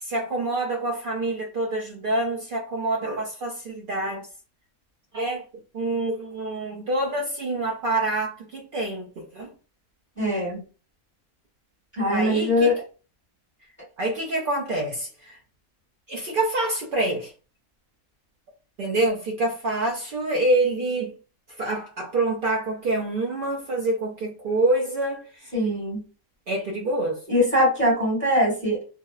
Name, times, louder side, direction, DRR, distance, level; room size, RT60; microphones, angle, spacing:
voice 1, 0.0-4.3 5.1-5.4 5.7-9.5 12.1-12.7 14.0-15.4 16.1-17.3 18.8-21.1 21.6-25.5 26.5-27.2, right 2 dB, 85° right, 0.4 m, -26 dB
voice 2, 10.2-10.6 12.0-12.7 25.5-26.0 27.3-28.8, left 1 dB, 10° left, 1.0 m, -22 dB
2.7 x 2.0 x 2.3 m
omnidirectional pair, 1.5 m